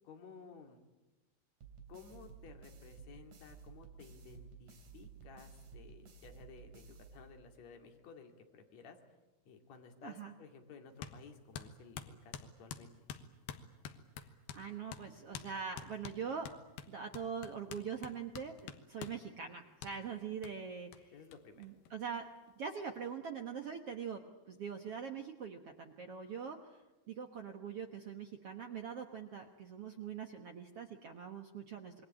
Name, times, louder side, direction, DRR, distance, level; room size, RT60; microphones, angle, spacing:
voice 1, 0.0-0.8 1.9-9.0 9.4-12.9 21.1-21.7, left 5 dB, 50° left, 4 dB, 3.2 m, -55 dB
sound 1, 1.6-7.7, right 5 dB, 50° right, 4.0 m, -55 dB
voice 2, 10.0-10.3 14.5-16.5 16.9-21.1 21.6-22.3 22.6-24.2 24.5-26.8 27.1-31.9, right 6 dB, 70° right, 5 dB, 1.4 m, -43 dB
sound 2, 11.0-11.2 11.5-14.6 14.9-15.1 15.3-15.5 15.8-19.2 19.8-19.9 20.4-20.5 20.9-21.0 21.3-21.4 21.6-22.4, left 8 dB, 80° left, 3.2 m, -47 dB
27.0 x 21.5 x 8.8 m, 1.1 s
omnidirectional pair, 4.6 m